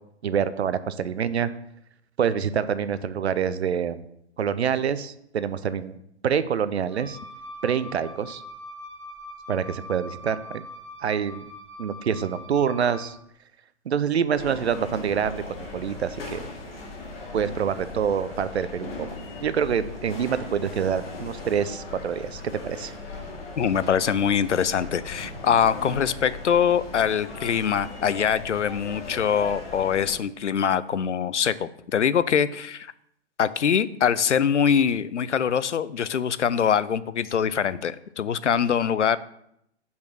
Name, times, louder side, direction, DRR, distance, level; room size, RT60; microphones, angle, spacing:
voice 1, 0.2-1.5 2.2-4.0 4.4-6.0 6.2-7.2 7.6-8.4 9.5-10.6 11.0-11.5 11.8-13.2 13.9-16.5 17.3-19.1 19.4-22.9, right 7 dB, 65° right, 14 dB, 0.6 m, -26 dB
Wind instrument woodwind instrument, 6.8-13.2, left 1 dB, 10° right, 1.0 m, -42 dB
sound 1, 14.4-30.2, left 3 dB, 55° left, 1.9 m, -38 dB
voice 2, 23.6-32.9 33.4-39.2, left 7 dB, 85° left, 16 dB, 0.5 m, -23 dB
5.4 x 4.9 x 6.2 m, 0.76 s
figure-of-eight pair, 115°, 35 cm